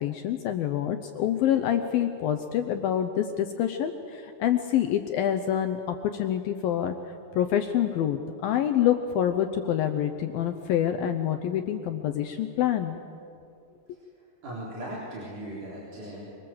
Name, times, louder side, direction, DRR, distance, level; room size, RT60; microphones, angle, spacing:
voice 1, 0.0-7.0 7.3-13.0, left 10 dB, 75° left, 7 dB, 2.3 m, -26 dB
voice 2, 14.4-16.2, right 1 dB, 45° right, -5 dB, 5.3 m, -38 dB
25.5 x 24.0 x 7.8 m, 2.5 s
omnidirectional pair, 5.1 m